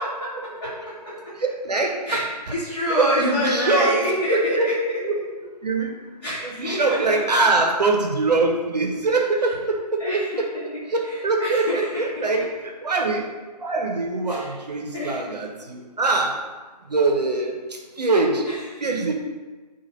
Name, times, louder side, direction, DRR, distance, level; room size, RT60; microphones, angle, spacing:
voice 1, 0.2-1.3 2.1-5.2 6.2-7.4 10.0-10.4 11.0-11.9 12.2-12.3 14.3-14.5 14.9-15.2 18.0-18.1 18.4-18.8, equal, 35° left, -13 dB, 1.2 m, -27 dB
voice 2, 1.4-2.2 3.0-4.0 4.5-4.7 5.0-5.1 5.6-5.9 6.4-10.5 10.9-13.3 13.6-16.4 16.9-18.4 18.8-19.1, right 3 dB, 70° right, 1 dB, 0.7 m, -23 dB
4.3 x 2.4 x 3.0 m, 1.3 s
figure-of-eight pair, 150°, 21 cm